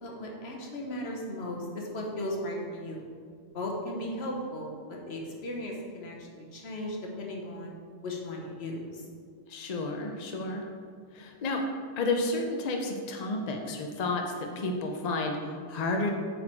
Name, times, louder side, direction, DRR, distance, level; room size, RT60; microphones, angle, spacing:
voice 1, 0.0-3.1 3.5-7.7 8.0-9.0, left 1 dB, 70° left, -1 dB, 1.2 m, -36 dB
voice 2, 9.5-10.7 11.1-11.6 12.0-16.1, left 2 dB, 45° left, 2 dB, 0.6 m, -31 dB
7.7 x 4.2 x 4.4 m, 2.1 s
omnidirectional pair, 1.1 m